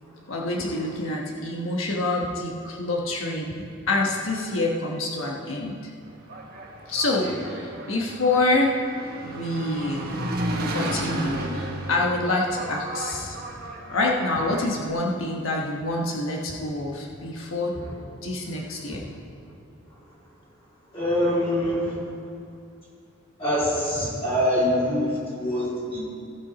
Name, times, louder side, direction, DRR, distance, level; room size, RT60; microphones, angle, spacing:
voice 1, 0.3-5.8 6.9-8.8 9.2-10.1 10.7-13.4 13.9-17.7 18.2-19.1, left 2 dB, 90° left, -1 dB, 1.1 m, -26 dB
Engine, 6.1-14.9, right 1 dB, 50° right, 1.2 m, -33 dB
voice 2, 20.9-22.0 23.4-26.0, equal, 30° left, -8 dB, 3.2 m, -24 dB
16.5 x 5.8 x 5.0 m, 2.4 s
head